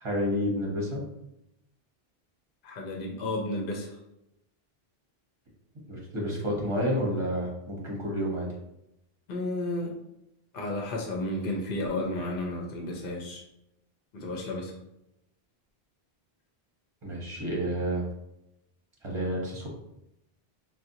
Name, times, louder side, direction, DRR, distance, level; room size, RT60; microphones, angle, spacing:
voice 1, 0.0-1.0 5.9-8.5 17.0-18.0 19.0-19.7, equal, 30° right, -3 dB, 0.9 m, -30 dB
voice 2, 2.6-4.0 9.3-9.9 10.5-13.4 14.1-14.7, left 1 dB, 65° left, 0 dB, 0.8 m, -32 dB
4.1 x 2.1 x 2.6 m, 0.83 s
omnidirectional pair, 1.0 m